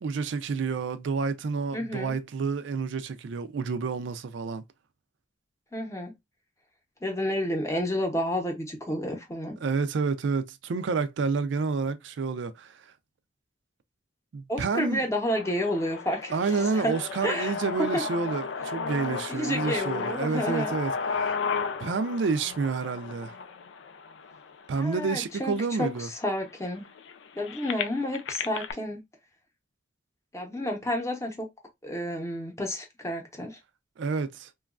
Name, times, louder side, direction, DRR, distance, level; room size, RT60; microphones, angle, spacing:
voice 1, 0.0-4.6 9.6-12.8 14.3-15.0 16.3-21.4 21.8-23.3 24.7-26.1 34.0-34.5, right 4 dB, 80° right, 0.4 m, -29 dB
voice 2, 1.7-2.1 5.7-6.1 7.0-9.6 14.5-16.3 16.7-16.9 17.2-17.5 17.9-18.0 19.3-20.7 24.8-26.9 27.4-29.0 30.3-31.5 31.8-33.6, left 1 dB, 15° left, 0.7 m, -30 dB
sound 1, 15.3-25.2 25.9-26.0 26.3-28.7, left 5 dB, 90° left, 0.4 m, -34 dB
3.0 x 2.3 x 2.3 m
head